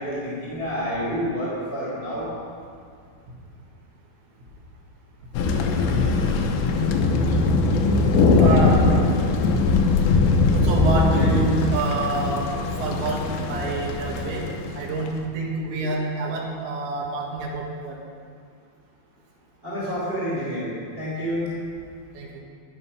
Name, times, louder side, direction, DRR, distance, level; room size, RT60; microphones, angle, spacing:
voice 1, 0.0-2.3 19.6-20.7 21.0-21.5, equal, 15° right, -8 dB, 2.9 m, -28 dB
Thunder, 5.3-15.1, left 3 dB, 75° left, 2.5 m, -21 dB
voice 2, 8.4-8.9 10.5-14.5 14.7-18.0 22.1-22.4, right 3 dB, 80° right, -3 dB, 4.3 m, -27 dB
12.5 x 11.0 x 5.6 m, 2.2 s
omnidirectional pair, 5.0 m